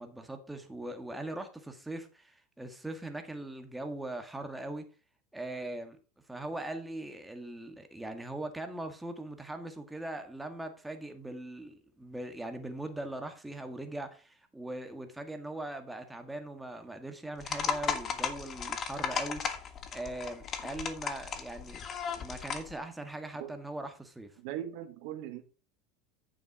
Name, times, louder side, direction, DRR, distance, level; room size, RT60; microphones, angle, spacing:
voice 1, 0.0-4.8 5.3-6.0 6.3-19.6 19.9-21.8 22.2-24.3, right 1 dB, 5° right, 1.7 m, -40 dB
sound 1, 17.4-22.7, left 7 dB, 35° left, 1.5 m, -35 dB
voice 2, 24.4-25.4, right 11 dB, 70° right, 1.7 m, -39 dB
9.1 x 7.1 x 4.8 m
supercardioid pair, 125°, 0 cm